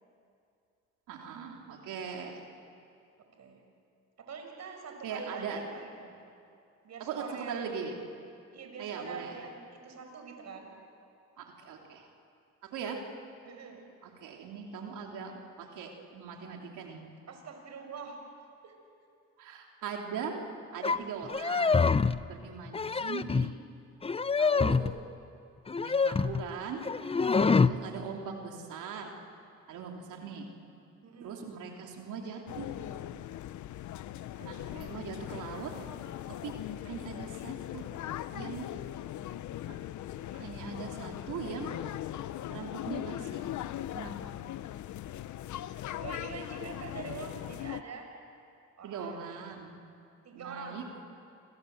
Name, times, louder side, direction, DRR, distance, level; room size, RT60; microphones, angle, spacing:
voice 1, 1.1-2.4 5.0-5.6 7.0-7.9 8.8-9.3 11.4-12.1 12.6-13.0 14.0-17.0 19.4-20.4 20.7-21.9 22.3-23.5 24.4-24.8 25.8-26.8 27.4-29.1 29.7-30.5 31.2-32.7 34.4-35.7 36.3-36.6 36.8-37.8 38.3-38.7 39.7-39.8 40.3-41.7 42.5-43.5 43.9-44.3 48.8-49.7 50.3-50.8, right 6 dB, 85° right, 1 dB, 3.1 m, -40 dB
voice 2, 4.2-6.1 6.8-7.7 8.5-10.7 13.4-13.8 17.3-18.2 18.6-18.7 22.7-23.0 27.2-27.8 31.0-31.4 34.4-35.0 46.0-48.1 48.8-49.4 50.2-50.8, right 5 dB, 60° right, 4 dB, 5.8 m, -45 dB
sound 1, 20.8-21.0 21.3-22.2 22.7-23.6 24.0-25.0 25.7-26.5 26.8-27.8, left 4 dB, 20° left, 0.6 m, -26 dB
sound 2, 32.5-47.8, left 12 dB, 70° left, 0.8 m, -40 dB
28.0 x 25.5 x 7.9 m, 2.5 s
cardioid pair, 90°, 30 cm